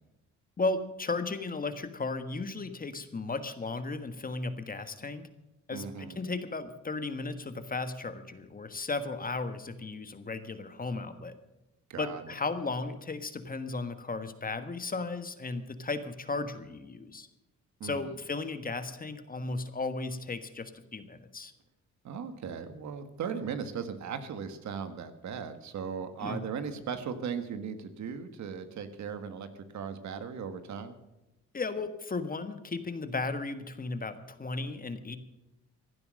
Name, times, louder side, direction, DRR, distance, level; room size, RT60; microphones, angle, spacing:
voice 1, 0.6-5.3 5.7-11.3 12.0-17.3 17.8-21.5 26.2-26.4 31.5-35.2, left 3 dB, 30° left, 10 dB, 1.5 m, -35 dB
voice 2, 5.7-6.2 11.9-12.2 17.8-18.1 22.0-30.9, right 6 dB, 65° right, 9 dB, 1.7 m, -37 dB
16.0 x 11.0 x 6.4 m, 0.99 s
cardioid pair, 90°, 30 cm